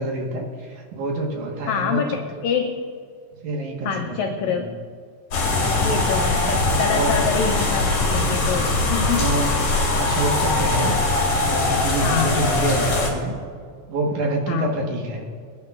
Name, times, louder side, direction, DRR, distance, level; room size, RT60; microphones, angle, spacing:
voice 1, 0.0-2.2 3.4-4.2 4.4-4.6 6.9-7.2 9.0-10.9 11.4-13.3 13.9-15.2, right 2 dB, 65° right, 0 dB, 2.8 m, -26 dB
voice 2, 1.7-2.8 3.8-4.7 5.7-9.3 12.0-12.4 14.5-14.8, left 6 dB, 85° left, 4 dB, 1.6 m, -26 dB
sound 1, 5.3-13.1, left 2 dB, 60° left, 3.8 m, -21 dB
22.5 x 9.9 x 2.5 m, 2.1 s
omnidirectional pair, 4.0 m